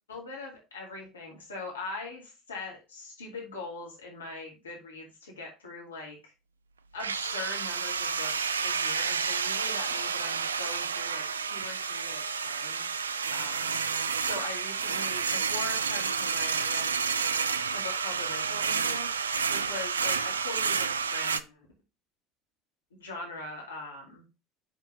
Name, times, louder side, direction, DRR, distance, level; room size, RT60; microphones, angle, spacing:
voice 1, 0.1-6.3 6.9-12.9 13.3-13.8 14.2-16.9 17.7-19.1 19.5-21.7 22.9-24.2, left 3 dB, 80° left, -1 dB, 2.2 m, -41 dB
sound 1, 7.0-21.4, right 6 dB, 85° right, 0.4 m, -30 dB
5.7 x 4.9 x 5.5 m, 0.28 s
figure-of-eight pair, 70°, 0 cm